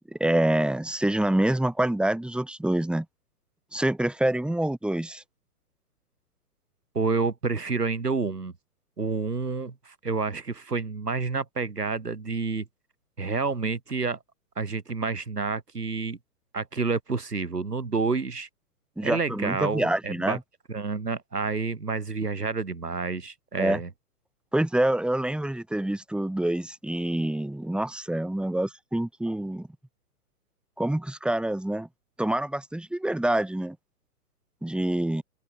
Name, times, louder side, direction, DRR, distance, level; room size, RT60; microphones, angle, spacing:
voice 1, 0.1-3.1 3.7-5.2 19.0-20.4 23.6-23.8 24.5-29.7 30.8-31.9 32.2-33.8 34.6-35.2, right 1 dB, ahead, 5.4 m, -26 dB
voice 2, 6.9-8.5 9.0-12.6 13.2-14.2 14.6-16.2 16.5-18.5 19.0-20.4 20.7-23.9, right 4 dB, 90° right, 3.1 m, -29 dB
open air
figure-of-eight pair, 120°, 46 cm